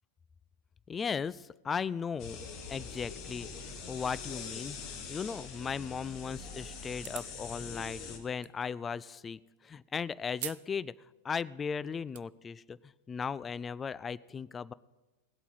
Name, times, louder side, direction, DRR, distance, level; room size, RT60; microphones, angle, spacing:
voice 1, 0.9-2.4 2.7-4.8 5.1-10.9 11.2-14.7, left 6 dB, 20° left, 19 dB, 0.3 m, -37 dB
sound 1, 2.2-8.2, left 5 dB, 40° left, 1.6 m, -43 dB
sound 2, 7.0-7.4 8.4-8.5 10.4-10.7 11.1-11.2 11.8-12.2, right 15 dB, 55° right, 0.4 m, -41 dB
17.0 x 8.2 x 5.6 m, 1.1 s
figure-of-eight pair, 90°, 0 cm